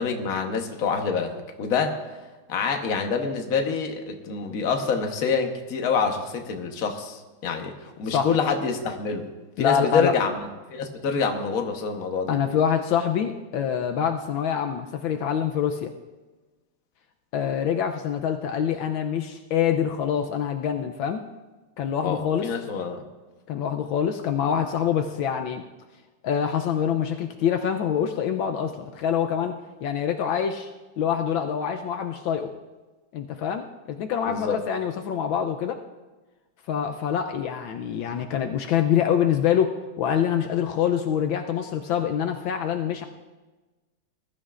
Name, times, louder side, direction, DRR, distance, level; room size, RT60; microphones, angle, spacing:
voice 1, 0.0-1.3 1.6-2.0 2.5-9.3 9.6-10.3 10.7-12.3 22.0-23.0 34.3-34.6, left 5 dB, 50° left, 4 dB, 1.4 m, -26 dB
voice 2, 9.6-10.1 12.3-15.9 17.3-21.2 21.8-22.5 23.5-25.6 26.2-30.7 31.0-32.5 33.1-35.8 36.7-43.1, left 8 dB, 75° left, 5 dB, 1.4 m, -25 dB
20.5 x 12.5 x 2.5 m, 1.2 s
omnidirectional pair, 2.3 m